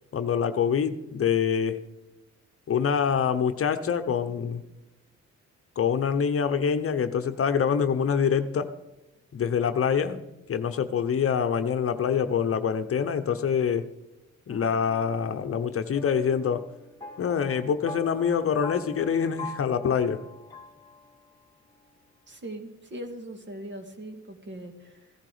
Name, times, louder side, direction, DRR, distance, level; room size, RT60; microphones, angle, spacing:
voice 1, 0.1-1.8 2.7-4.6 5.8-8.7 9.3-13.9 14.5-16.6 17.2-20.2, left 7 dB, 45° left, 9 dB, 1.0 m, -25 dB
sound 1, 15.6-21.5, left 3 dB, 10° left, 2.5 m, -44 dB
voice 2, 22.3-25.1, right 1 dB, 40° right, 5 dB, 2.3 m, -40 dB
16.0 x 11.0 x 5.0 m, 0.99 s
cardioid pair, 90°, 30 cm